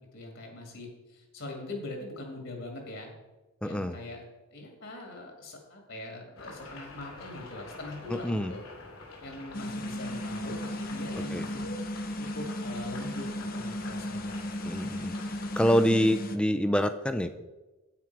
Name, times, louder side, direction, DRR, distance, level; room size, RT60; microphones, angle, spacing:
voice 1, 0.1-3.1 3.6-4.2 4.5-8.6 9.2-11.7 12.2-14.3, left 2 dB, 60° left, 2 dB, 2.1 m, -42 dB
voice 2, 3.6-4.0 8.1-8.5 11.3-11.4 14.6-15.1 15.6-17.3, equal, 5° left, 10 dB, 0.4 m, -26 dB
sound 1, 6.4-15.7, left 3 dB, 75° left, 2.6 m, -46 dB
sound 2, 9.5-16.4, left 1 dB, 40° left, 0.7 m, -35 dB
9.5 x 8.9 x 4.7 m, 1.1 s
head